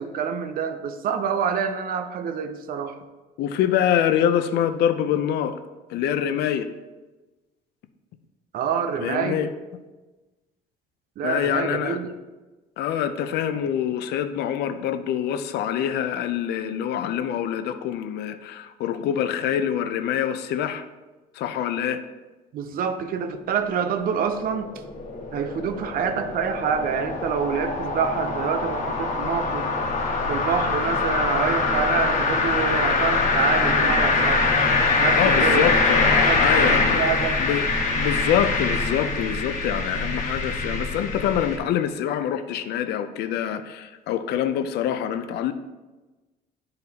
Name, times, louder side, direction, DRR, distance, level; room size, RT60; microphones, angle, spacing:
voice 1, 0.0-3.0 8.5-9.4 11.2-12.1 22.5-24.7 25.3-29.7 30.3-34.4 35.0-35.7 36.3-37.4, right 7 dB, 60° right, 9 dB, 0.6 m, -27 dB
voice 2, 3.4-5.6 5.9-6.7 9.0-9.5 11.2-12.0 12.8-20.9 21.3-22.0 35.1-37.0 37.4-37.7 38.0-45.5, left 9 dB, 75° left, 10 dB, 0.5 m, -25 dB
sound 1, 24.0-41.6, left 3 dB, 45° left, 1.3 m, -23 dB
10.5 x 3.9 x 2.8 m, 1.2 s
cardioid pair, 110°, 17 cm